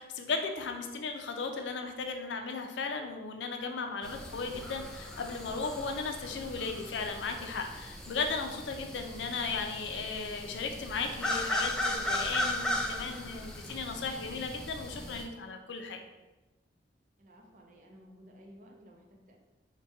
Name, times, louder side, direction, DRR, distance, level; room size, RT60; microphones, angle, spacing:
voice 1, 0.0-16.0, left 4 dB, 85° left, 4 dB, 0.4 m, -36 dB
sound 1, 4.0-15.2, left 1 dB, 5° left, 0.3 m, -37 dB
voice 2, 17.2-19.4, equal, 45° right, 0 dB, 0.5 m, -55 dB
4.5 x 2.2 x 2.7 m, 1.1 s
head